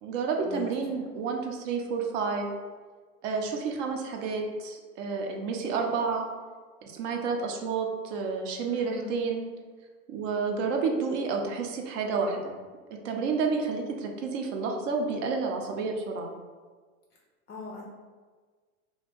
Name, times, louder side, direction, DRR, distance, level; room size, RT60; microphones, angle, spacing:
voice 1, 0.0-2.5 3.2-6.2 6.8-9.4 10.1-12.6 13.0-16.3, right 4 dB, 60° right, 2 dB, 0.7 m, -30 dB
voice 2, 8.7-9.2 17.5-17.8, left 3 dB, 25° left, -2 dB, 0.4 m, -41 dB
2.6 x 2.3 x 3.7 m, 1.4 s
hypercardioid pair, 115°, 43 cm